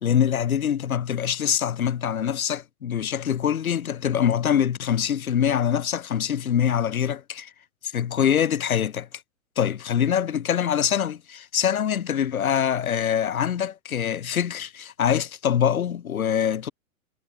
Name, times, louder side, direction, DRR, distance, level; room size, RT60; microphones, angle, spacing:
voice 1, 0.0-7.5 7.8-9.1 9.6-16.7, left 9 dB, 75° left, 1.5 m, -24 dB
hypercardioid pair, 110°, 43 cm